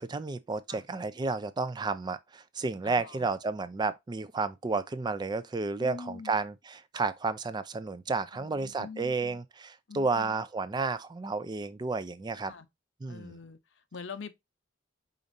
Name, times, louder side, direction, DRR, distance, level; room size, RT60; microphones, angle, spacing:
voice 1, 0.0-12.5 13.0-13.4, right 3 dB, 20° right, 0.3 m, -32 dB
voice 2, 2.8-3.3 5.8-6.3 8.3-9.4 9.9-10.3 12.4-12.7 13.1-14.3, left 5 dB, 65° left, 0.7 m, -44 dB
5.0 x 4.1 x 2.6 m
head